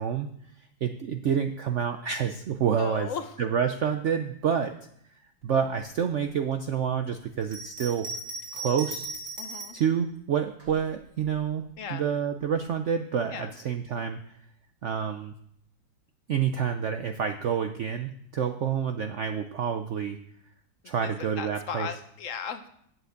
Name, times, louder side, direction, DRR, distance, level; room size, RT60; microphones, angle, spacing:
voice 1, 0.0-3.1 3.4-4.7 5.1-8.1 8.5-9.1 9.7-14.4 14.8-15.3 16.3-20.2 20.8-21.9, right 7 dB, 85° right, 7 dB, 0.6 m, -28 dB
voice 2, 2.8-3.3 9.4-9.8 11.8-12.0 13.3-13.5 21.0-22.6, left 6 dB, 55° left, 9 dB, 1.0 m, -36 dB
Bell, 7.4-9.9 10.6-11.5, right 2 dB, 30° right, 2.0 m, -38 dB
8.4 x 7.7 x 8.0 m, 0.70 s
omnidirectional pair, 2.0 m